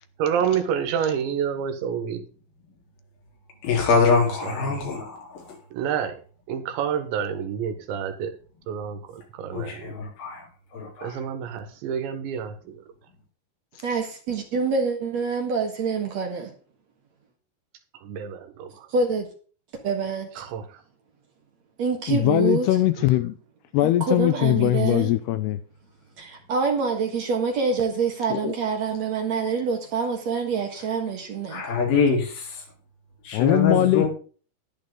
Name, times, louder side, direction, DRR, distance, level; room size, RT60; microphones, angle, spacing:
voice 1, 0.2-2.2 4.4-4.8 5.7-6.2 6.5-8.4 8.7-9.9 11.0-12.6 18.0-18.9 20.4-20.7 23.0-23.1, right 8 dB, 80° right, 3.5 m, -28 dB
voice 2, 3.6-5.6 9.5-11.2 31.5-32.6 33.2-34.1, left 4 dB, 55° left, 5.1 m, -24 dB
voice 3, 13.8-16.5 18.9-19.3 19.8-20.4 21.8-22.7 23.8-25.1 26.2-31.7, right 5 dB, 55° right, 2.0 m, -26 dB
voice 4, 22.1-23.4 23.7-25.6 28.3-28.5 33.3-34.1, left 14 dB, 80° left, 2.4 m, -21 dB
11.5 x 10.5 x 3.8 m
omnidirectional pair, 5.2 m